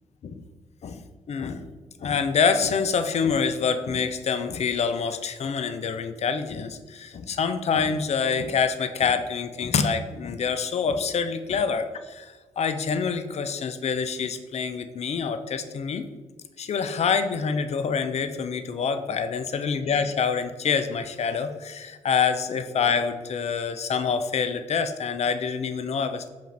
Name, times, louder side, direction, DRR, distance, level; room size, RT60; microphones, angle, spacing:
voice 1, 1.3-1.6 2.0-16.1 16.6-26.3, left 6 dB, 45° left, 9 dB, 0.4 m, -26 dB
4.9 x 2.5 x 3.3 m, 1.3 s
supercardioid pair, 45°, 15 cm